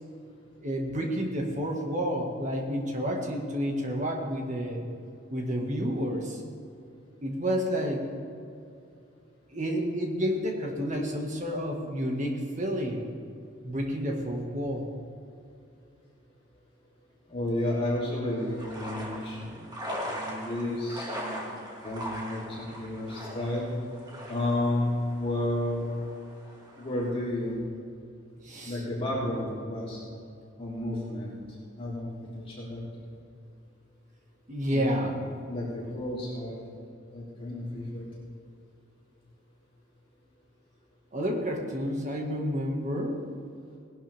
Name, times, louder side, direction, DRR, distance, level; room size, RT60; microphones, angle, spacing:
voice 1, 0.6-4.8 5.3-6.4 7.2-8.1 9.5-13.0 13.6-14.9 28.4-28.8 34.5-35.2 41.1-43.2, equal, 40° right, 0 dB, 1.9 m, -30 dB
voice 2, 17.3-19.5 20.0-21.5 21.8-23.7 24.3-24.9 25.2-25.8 26.8-27.6 28.6-30.0 30.6-31.4 31.8-32.1 32.5-33.1 34.7-35.1 35.5-36.6 37.1-38.0, left 1 dB, 30° left, -7 dB, 3.5 m, -32 dB
sound 1, 18.4-27.1, equal, 20° right, 2.1 m, -40 dB
19.0 x 11.5 x 3.6 m, 2.5 s
head